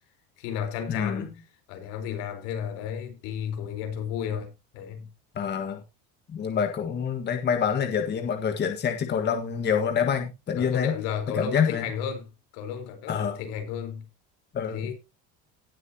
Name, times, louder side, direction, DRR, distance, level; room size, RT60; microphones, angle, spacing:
voice 1, 0.4-1.4 1.7-5.1 10.6-12.3 12.5-14.0 14.7-14.9, left 8 dB, 80° left, 4.6 m, -33 dB
voice 2, 0.9-1.3 5.3-5.8 6.3-10.9 11.4-11.8 13.1-13.4 14.5-14.9, left 7 dB, 30° left, 1.7 m, -26 dB
18.0 x 7.7 x 3.0 m
cardioid pair, 140°, 34 cm